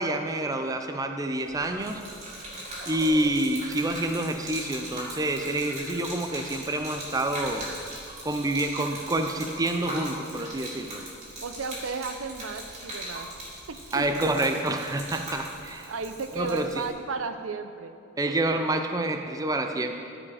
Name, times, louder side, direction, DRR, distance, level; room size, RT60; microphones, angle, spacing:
voice 1, 0.0-2.0 2.9-7.7 8.2-11.0 13.9-15.9 16.3-16.8 18.2-19.9, right 1 dB, 15° right, 6 dB, 0.4 m, -28 dB
Gurgling / Liquid, 1.4-16.9, right 1 dB, 35° right, 2.3 m, -40 dB
voice 2, 11.4-13.3 13.7-14.3 15.9-17.9, right 4 dB, 80° right, 9 dB, 0.6 m, -34 dB
14.0 x 5.0 x 4.9 m, 2.5 s
head